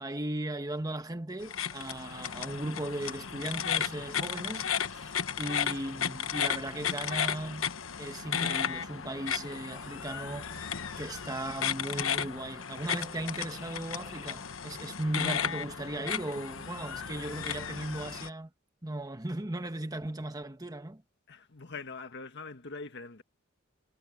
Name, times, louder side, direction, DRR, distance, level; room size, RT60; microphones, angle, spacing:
voice 1, 0.0-7.7 8.0-10.7 11.0-18.5 18.8-21.0, right 1 dB, 20° right, 1.4 m, -37 dB
sound 1, 1.4-18.3, left 8 dB, 75° left, 1.2 m, -34 dB
voice 2, 21.3-23.2, left 4 dB, 55° left, 1.8 m, -43 dB
head